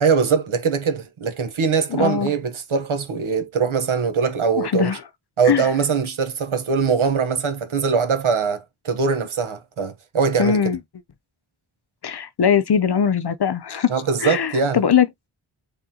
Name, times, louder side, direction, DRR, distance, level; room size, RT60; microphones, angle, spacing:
voice 1, 0.0-4.9 5.4-10.6 13.9-14.8, right 5 dB, 75° right, 1.0 m, -22 dB
voice 2, 2.0-2.3 4.6-5.0 5.5-5.7 10.4-10.8 12.0-13.9 14.2-15.1, left 7 dB, 55° left, 0.6 m, -20 dB
3.7 x 3.5 x 2.8 m
wide cardioid pair, 65°, 50 cm